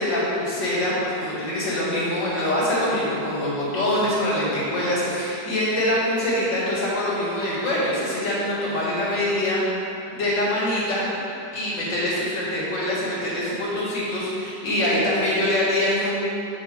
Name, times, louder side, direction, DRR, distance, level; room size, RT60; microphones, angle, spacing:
voice 1, 0.0-9.6 10.1-11.2 11.5-16.1, left 1 dB, 90° left, -8 dB, 2.7 m, -24 dB
8.8 x 5.4 x 3.7 m, 2.8 s
omnidirectional pair, 1.9 m